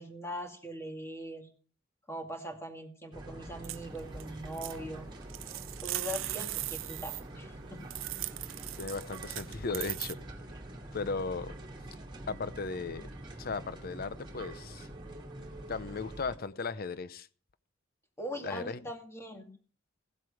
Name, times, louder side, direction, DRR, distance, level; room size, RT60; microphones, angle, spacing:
voice 1, 0.0-1.5 2.1-5.1 5.8-7.9 18.2-19.5, equal, 15° left, 2.3 m, -41 dB
sound 1, 3.1-16.4, right 1 dB, 25° right, 2.5 m, -45 dB
sound 2, 3.6-4.2 4.5-4.8 5.2-7.2 7.9-10.1, right 17 dB, 90° right, 0.5 m, -38 dB
voice 2, 8.8-10.2 10.9-11.6 12.3-13.1 13.4-14.9 15.7-17.3 18.4-18.8, left 4 dB, 50° left, 0.7 m, -36 dB
16.0 x 7.9 x 4.9 m
head